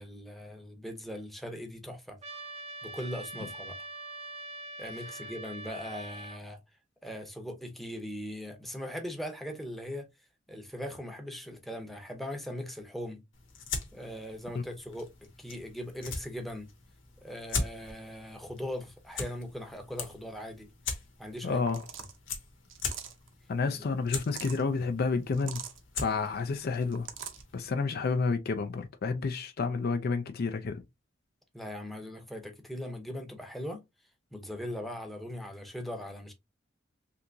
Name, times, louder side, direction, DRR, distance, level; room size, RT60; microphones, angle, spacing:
voice 1, 0.0-2.2 2.8-3.8 4.8-6.6 7.0-10.1 10.5-13.2 13.9-16.7 17.2-20.7 21.2-21.7 31.5-33.8 34.3-36.3, equal, ahead, 0.7 m, -40 dB
Trumpet, 2.2-6.4, right 2 dB, 35° right, 0.7 m, -43 dB
sound 1, 13.3-27.7, left 4 dB, 85° left, 1.0 m, -41 dB
voice 2, 21.4-21.8 23.5-25.6 26.0-27.1 27.5-30.8, left 4 dB, 55° left, 0.4 m, -30 dB
sound 2, 21.7-22.2 22.7-23.3 24.1-24.6 25.3-25.8 26.7-27.4, right 9 dB, 75° right, 0.7 m, -42 dB
3.4 x 2.8 x 2.6 m
head